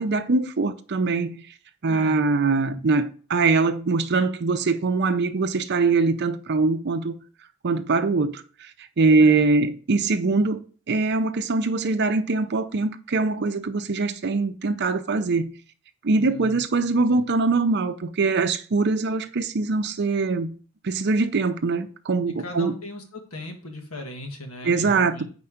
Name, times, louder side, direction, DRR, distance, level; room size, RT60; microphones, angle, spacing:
voice 1, 0.0-1.4 1.8-7.2 7.6-8.7 9.0-10.6 10.9-15.5 16.0-20.5 20.8-22.7 24.6-25.2, right 3 dB, 55° right, 0.6 m, -22 dB
voice 2, 1.9-2.2 9.2-9.5 16.2-16.6 22.4-25.2, left 1 dB, 90° left, 1.5 m, -38 dB
4.9 x 4.4 x 5.7 m
head